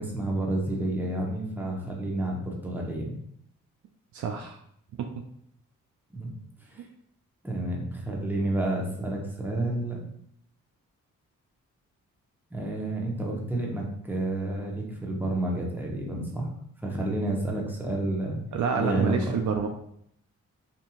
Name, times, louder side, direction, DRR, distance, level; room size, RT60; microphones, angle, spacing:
voice 1, 0.0-3.2 6.1-6.3 6.7-6.9 7.4-10.0 12.5-16.5 16.8-18.4 18.7-19.3, right 1 dB, 5° right, -2 dB, 0.8 m, -30 dB
voice 2, 4.1-4.6 18.5-19.7, right 6 dB, 60° right, 3 dB, 0.4 m, -27 dB
2.8 x 2.6 x 2.3 m, 0.70 s
supercardioid pair, 50°, 34 cm